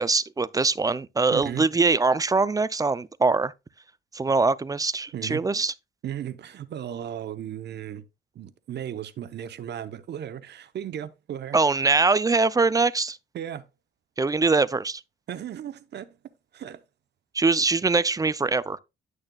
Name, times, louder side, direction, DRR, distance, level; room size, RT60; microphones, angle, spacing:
voice 1, 0.0-3.5 4.1-5.7 11.5-13.2 14.2-15.0 17.3-18.8, right 3 dB, 20° right, 0.4 m, -23 dB
voice 2, 1.3-1.7 5.1-5.4 6.0-8.0 8.3-11.6 13.3-13.6 15.3-16.2 16.5-16.8, right 10 dB, 60° right, 0.8 m, -35 dB
10.5 x 6.4 x 2.3 m
cardioid pair, 90°, 20 cm